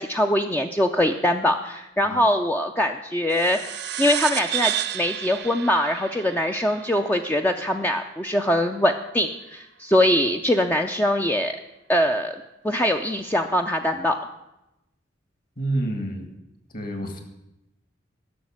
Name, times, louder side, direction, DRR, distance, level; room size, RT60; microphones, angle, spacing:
voice 1, 0.0-3.6 4.0-11.5 11.9-12.4 12.6-14.2, left 1 dB, 10° left, 4 dB, 0.5 m, -22 dB
sound 1, 3.3-8.2, right 11 dB, 60° right, 0.6 m, -31 dB
voice 2, 15.6-16.3 16.7-17.2, right 1 dB, 50° left, 6 dB, 2.0 m, -28 dB
11.5 x 6.5 x 8.7 m, 0.90 s
head